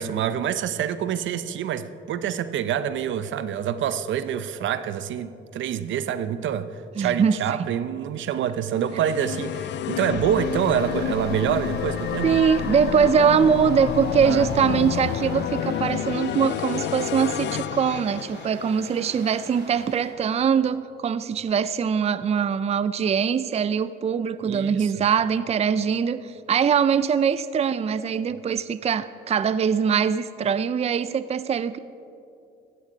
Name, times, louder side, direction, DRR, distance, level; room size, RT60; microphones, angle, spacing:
voice 1, 0.0-6.7 7.0-12.4 14.2-14.5 24.4-24.9, right 9 dB, 75° right, 13 dB, 0.7 m, -26 dB
voice 2, 7.0-7.4 12.2-31.8, right 7 dB, 30° right, 15 dB, 0.5 m, -22 dB
sound 1, 8.7-18.9, left 11 dB, 65° left, 0.5 m, -29 dB
sound 2, 10.3-20.1, right 2 dB, 60° right, 4.1 m, -42 dB
16.5 x 14.0 x 5.1 m, 2.7 s
cardioid pair, 90°, 20 cm